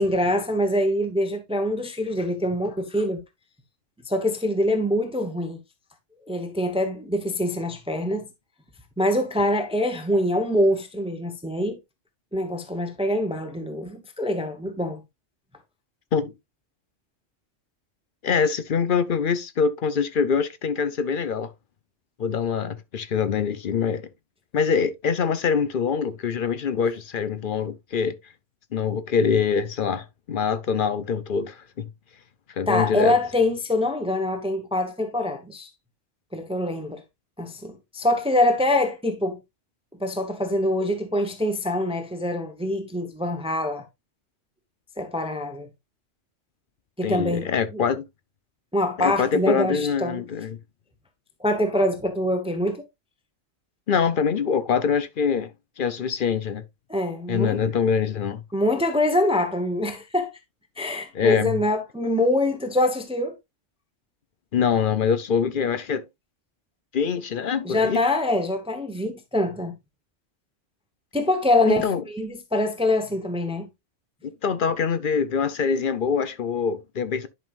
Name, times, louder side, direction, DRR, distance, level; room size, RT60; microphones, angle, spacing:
voice 1, 0.0-3.2 4.1-5.6 6.3-8.3 9.0-11.8 12.3-15.0 32.7-35.7 36.3-37.0 37.4-39.4 40.0-43.8 45.0-45.7 47.0-47.8 48.7-50.2 51.4-52.8 56.9-57.9 58.5-60.3 60.8-63.3 67.6-69.7 71.1-73.7, left 1 dB, 5° right, 0.9 m, -24 dB
voice 2, 18.2-21.5 22.2-24.0 24.5-28.1 28.7-31.9 32.6-33.2 47.0-48.1 49.0-50.6 53.9-56.6 57.3-58.4 61.1-61.5 64.5-66.0 66.9-68.0 71.7-72.0 74.4-77.3, left 6 dB, 50° left, 0.8 m, -24 dB
10.5 x 5.4 x 2.5 m
omnidirectional pair, 1.3 m